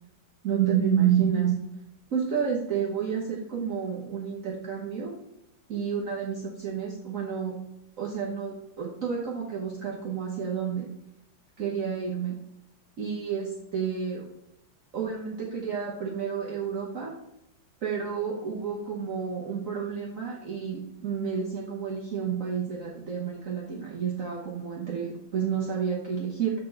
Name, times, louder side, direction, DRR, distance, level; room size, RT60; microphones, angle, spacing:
voice 1, 0.4-1.5 2.1-5.1 5.7-7.6 8.0-10.9 11.6-12.4 13.0-14.3 14.9-17.1 17.8-26.5, right 7 dB, 50° right, -3 dB, 1.2 m, -30 dB
7.5 x 4.2 x 4.5 m, 0.83 s
omnidirectional pair, 2.1 m